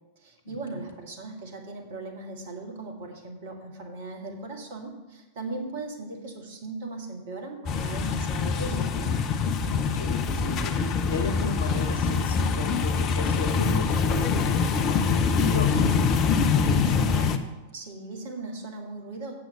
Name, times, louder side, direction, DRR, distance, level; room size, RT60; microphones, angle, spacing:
voice 1, 0.2-9.0 16.4-17.5 17.7-19.3, right 2 dB, 55° right, 2 dB, 1.8 m, -38 dB
sound 1, 7.7-17.4, left 5 dB, 35° left, 0.7 m, -24 dB
voice 2, 9.7-15.9, left 2 dB, 65° left, 7 dB, 1.1 m, -35 dB
7.8 x 6.7 x 6.6 m, 1.1 s
figure-of-eight pair, 90°, 0 cm